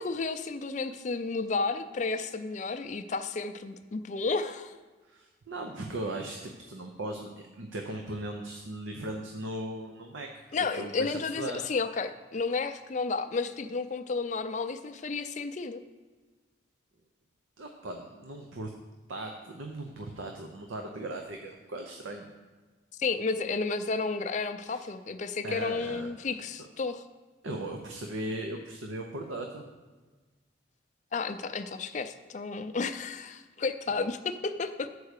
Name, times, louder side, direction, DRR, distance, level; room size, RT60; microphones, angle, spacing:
voice 1, 0.0-4.7 10.5-15.8 23.0-27.0 31.1-34.9, left 4 dB, 35° left, 9 dB, 0.4 m, -32 dB
voice 2, 5.1-10.3 10.7-11.6 17.6-18.7 19.1-22.3 24.7-24.8 25.4-26.1 26.6-26.7 27.4-29.7, right 1 dB, 80° right, 3 dB, 0.7 m, -38 dB
8.1 x 4.7 x 6.5 m, 1.3 s
head